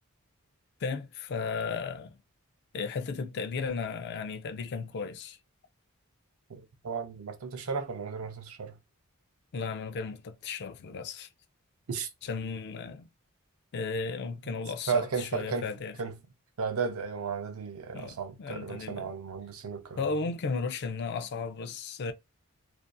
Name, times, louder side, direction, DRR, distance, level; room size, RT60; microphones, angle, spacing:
voice 1, 0.8-2.2 2.7-5.4 9.5-11.3 12.2-13.1 13.7-16.0 17.9-19.1 20.0-22.1, left 4 dB, 50° left, 0.4 m, -35 dB
voice 2, 6.5-8.8 11.9-12.1 14.4-14.5 14.9-15.7 16.0-16.1 16.6-20.1, right 5 dB, 65° right, 0.5 m, -34 dB
2.5 x 2.4 x 2.2 m
head